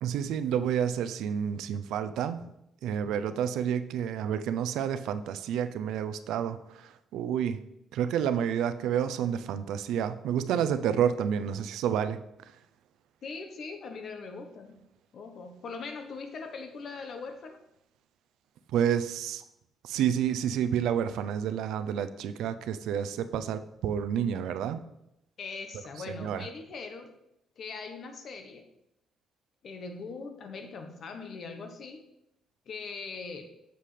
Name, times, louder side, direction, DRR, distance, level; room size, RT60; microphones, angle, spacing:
voice 1, 0.0-2.5 2.8-7.6 7.9-12.2 18.7-19.4 19.8-24.8 26.1-26.5, right 9 dB, 85° right, 11 dB, 0.4 m, -29 dB
voice 2, 13.2-14.8 15.1-17.6 25.4-27.1 27.6-28.7 29.6-32.0 32.7-33.5, left 4 dB, 60° left, 6 dB, 1.0 m, -41 dB
7.6 x 6.7 x 3.3 m, 0.83 s
cardioid pair, 90°, 0 cm